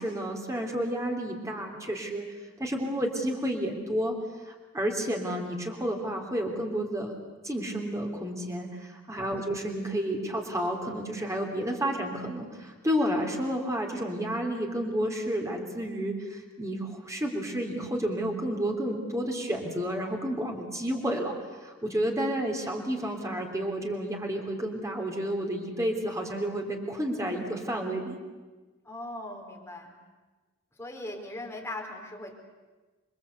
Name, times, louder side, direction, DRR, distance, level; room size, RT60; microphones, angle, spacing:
voice 1, 0.0-2.2 2.6-4.2 4.4-7.2 7.4-21.4 21.6-28.2, equal, 15° right, 1 dB, 3.3 m, -31 dB
voice 2, 28.8-30.0 30.8-32.3, left 1 dB, 10° left, 0 dB, 4.0 m, -39 dB
28.0 x 22.5 x 8.3 m, 1.3 s
head